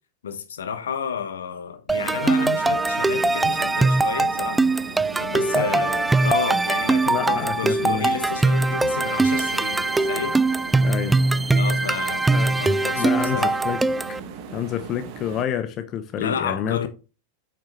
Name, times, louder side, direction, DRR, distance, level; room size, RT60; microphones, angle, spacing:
voice 1, 0.2-4.7 5.1-10.4 11.5-12.3 12.6-13.6 16.2-16.9, left 7 dB, 65° left, 1.1 m, -31 dB
sound 1, 1.9-14.2, right 3 dB, 10° right, 0.3 m, -21 dB
sound 2, 1.9-15.4, right 6 dB, 45° right, 1.3 m, -39 dB
voice 2, 7.1-8.1 10.8-11.2 12.3-12.6 12.9-13.8 14.5-16.9, left 9 dB, 35° left, 0.8 m, -28 dB
8.4 x 6.1 x 3.0 m
figure-of-eight pair, 90°, 0 cm